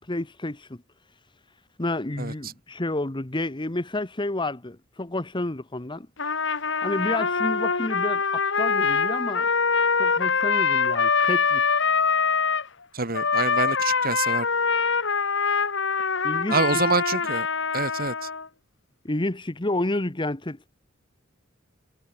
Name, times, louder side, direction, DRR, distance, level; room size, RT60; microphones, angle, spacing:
voice 1, 0.1-0.8 1.8-6.1 6.8-9.5 10.0-11.6 16.2-16.8 19.0-20.8, left 2 dB, 25° left, 1.3 m, -30 dB
Trumpet, 6.2-12.7 13.1-18.5, left 5 dB, 65° left, 2.7 m, -24 dB
voice 2, 12.9-14.5 16.5-17.5 17.7-18.3, right 4 dB, 50° right, 3.3 m, -26 dB
head